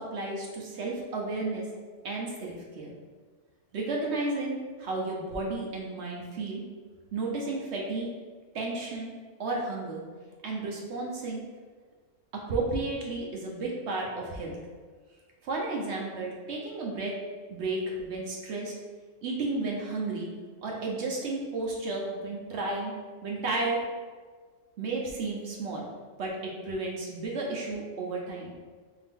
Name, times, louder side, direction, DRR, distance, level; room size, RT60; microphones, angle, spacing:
voice 1, 0.0-1.7 2.0-2.9 3.7-6.6 7.1-8.1 8.5-9.1 9.4-10.0 10.4-11.4 12.3-14.6 15.4-17.1 17.5-18.7 19.2-20.3 20.6-22.9 23.2-23.8 24.8-25.9 26.2-28.5, right 2 dB, 65° right, -2 dB, 0.9 m, -32 dB
3.5 x 2.8 x 3.5 m, 1.5 s
omnidirectional pair, 1.3 m